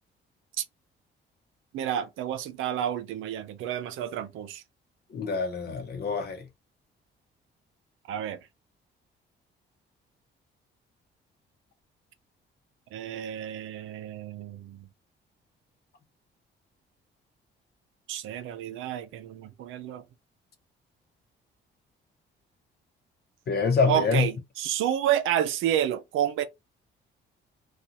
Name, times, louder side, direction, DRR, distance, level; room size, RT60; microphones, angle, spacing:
voice 1, 1.7-4.6 8.1-8.4 12.9-14.9 18.1-20.0 23.9-26.4, right 10 dB, 85° right, 0.6 m, -30 dB
voice 2, 5.1-6.4 23.5-24.3, left 5 dB, 55° left, 0.8 m, -26 dB
2.5 x 2.4 x 2.8 m
cardioid pair, 90°, 20 cm